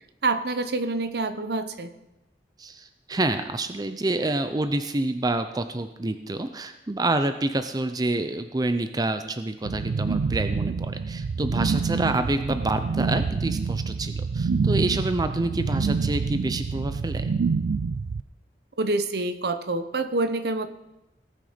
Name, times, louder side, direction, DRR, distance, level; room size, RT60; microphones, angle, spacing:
voice 1, 0.2-1.9 18.8-20.7, right 2 dB, 65° right, 10 dB, 0.8 m, -26 dB
voice 2, 2.6-17.3, right 2 dB, 20° right, 9 dB, 0.5 m, -27 dB
sound 1, 9.6-18.2, right 4 dB, 90° right, 0.4 m, -27 dB
18.5 x 6.6 x 5.1 m, 0.94 s
head